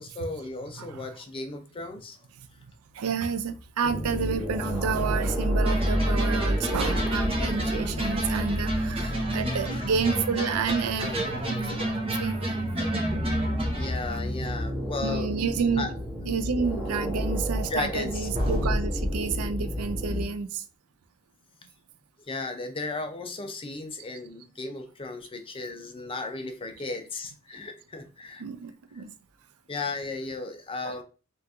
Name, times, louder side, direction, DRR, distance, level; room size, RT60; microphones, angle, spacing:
voice 1, 0.0-2.2 8.0-10.1 11.2-12.1 13.7-15.3 15.8-15.9 17.7-18.3 22.3-28.4 29.7-31.0, left 3 dB, 25° left, 0.5 m, -35 dB
voice 2, 2.9-11.1 11.5-12.6 15.0-15.9 16.3-20.6 28.4-29.1 30.8-31.0, right 5 dB, 80° right, 0.4 m, -30 dB
sound 1, 3.8-20.3, equal, 5° right, 1.1 m, -30 dB
sound 2, 5.6-14.4 18.3-18.7, right 1 dB, 25° right, 0.7 m, -30 dB
2.8 x 2.4 x 3.4 m
head